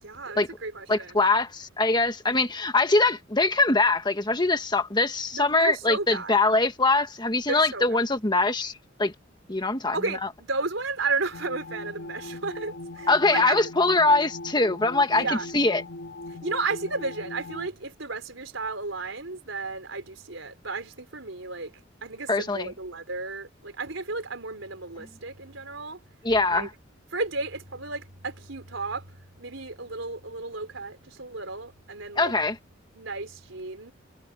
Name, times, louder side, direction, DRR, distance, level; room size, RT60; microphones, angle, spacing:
voice 1, 0.0-1.1 5.3-6.3 7.5-8.0 9.9-13.6 15.1-15.5 16.3-21.7 22.0-26.0 26.5-26.7 27.1-29.0 29.4-32.3 32.9-33.9, right 3 dB, 85° right, 4.2 m, -33 dB
voice 2, 0.9-8.7 9.0-9.1 9.5-9.9 13.1-15.8 22.3-22.7 26.2-26.7 32.2-32.5, left 3 dB, 25° left, 1.7 m, -23 dB
sound 1, 11.3-17.7, left 2 dB, 70° left, 2.6 m, -40 dB
head